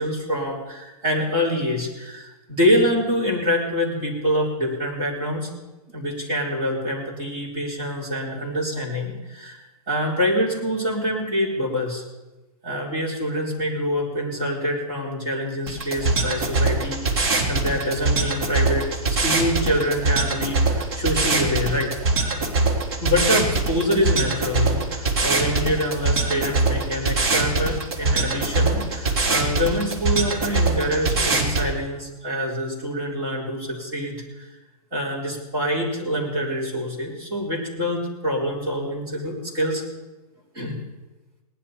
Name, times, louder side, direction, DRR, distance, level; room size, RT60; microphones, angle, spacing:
voice 1, 0.0-5.5 5.9-9.6 9.9-12.0 12.6-21.9 23.0-34.5 34.9-39.8 40.5-40.8, equal, 25° right, -6 dB, 3.9 m, -25 dB
sound 1, 15.7-31.7, right 3 dB, 40° right, 3.0 m, -23 dB
19.0 x 11.0 x 4.4 m, 1.1 s
hypercardioid pair, 175°, 20 cm